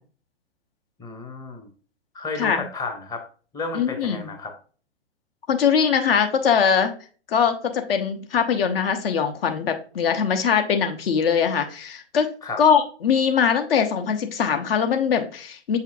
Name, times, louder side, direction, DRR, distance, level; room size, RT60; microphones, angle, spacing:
voice 1, 1.0-1.7 2.1-3.2 3.5-4.5 12.4-12.6, left 3 dB, 10° left, 4 dB, 0.8 m, -32 dB
voice 2, 3.7-4.3 5.5-6.9 7.3-15.8, left 7 dB, 55° left, 6 dB, 1.1 m, -22 dB
7.2 x 5.5 x 2.6 m, 0.39 s
figure-of-eight pair, 120°, 35 cm